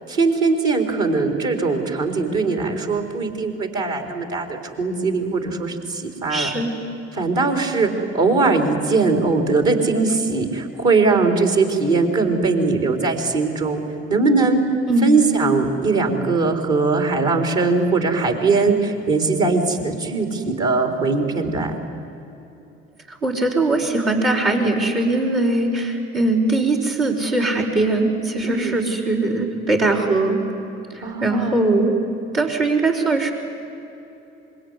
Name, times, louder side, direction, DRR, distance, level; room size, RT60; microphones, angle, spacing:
voice 1, 0.1-6.5 7.1-13.8 14.1-14.7 15.0-21.8 28.4-28.8 31.0-31.7, right 3 dB, 65° right, 4 dB, 4.1 m, -20 dB
voice 2, 6.3-6.7 14.9-15.1 23.1-30.4 30.9-32.0 32.3-33.3, right 2 dB, 85° right, 1 dB, 4.9 m, -20 dB
26.0 x 22.5 x 9.9 m, 2.9 s
hypercardioid pair, 50°, 32 cm